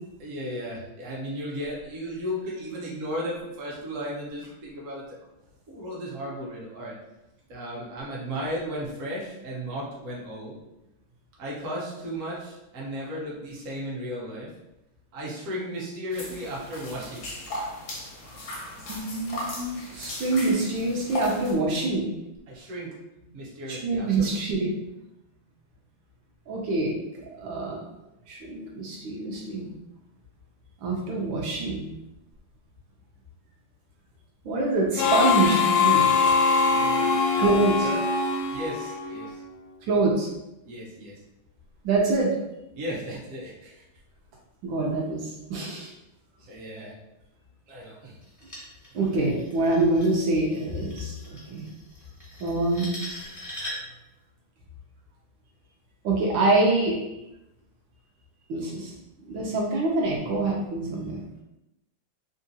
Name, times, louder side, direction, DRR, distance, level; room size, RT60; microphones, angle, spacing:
voice 1, 0.2-5.2 5.7-6.9 7.5-10.6 11.4-14.5 15.1-17.3 22.5-22.9 23.3-24.5 36.7-38.0 38.5-39.4 40.6-41.2 42.7-43.8 46.5-46.9 47.7-48.2 48.9-49.2 57.1-57.3, equal, 50° right, -5 dB, 1.0 m, -35 dB
sound 1, 16.1-21.5, left 1 dB, 70° left, 0.6 m, -36 dB
voice 2, 18.9-22.1 23.8-24.7 26.5-27.8 28.3-29.7 30.8-31.9 34.4-36.1 37.4-37.9 39.9-40.3 41.8-42.3 44.6-45.9 48.9-51.7 52.4-52.9 56.0-57.0 58.5-58.9 59.3-61.2, right 2 dB, 75° right, -2 dB, 1.4 m, -25 dB
Harmonica, 35.0-39.4, left 5 dB, 90° left, 1.5 m, -23 dB
sound 2, 48.2-54.0, equal, 20° left, 0.5 m, -41 dB
3.6 x 2.4 x 2.7 m, 0.90 s
omnidirectional pair, 2.3 m